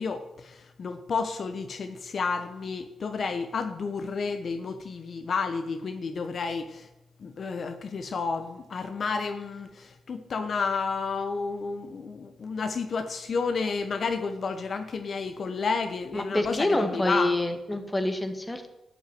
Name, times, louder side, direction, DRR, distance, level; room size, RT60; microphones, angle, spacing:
voice 1, 0.0-6.9 7.2-17.6, left 4 dB, 55° left, 8 dB, 1.0 m, -31 dB
voice 2, 16.1-18.7, left 1 dB, 15° left, 7 dB, 1.8 m, -27 dB
12.0 x 6.2 x 9.2 m, 0.95 s
cardioid pair, 75°, 0 cm